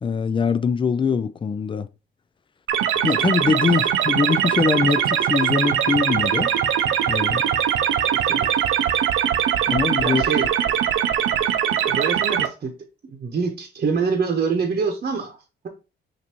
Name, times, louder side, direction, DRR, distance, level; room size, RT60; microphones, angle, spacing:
voice 1, 0.0-1.9 3.0-6.5 7.1-7.5 9.7-10.2, left 5 dB, 25° left, 0.4 m, -22 dB
sound 1, 2.7-12.5, right 9 dB, 80° right, 0.6 m, -21 dB
voice 2, 8.0-8.6 10.0-10.9 11.7-12.7 13.1-15.7, right 5 dB, 45° right, 0.9 m, -26 dB
5.8 x 2.7 x 2.9 m
cardioid pair, 90°, 20 cm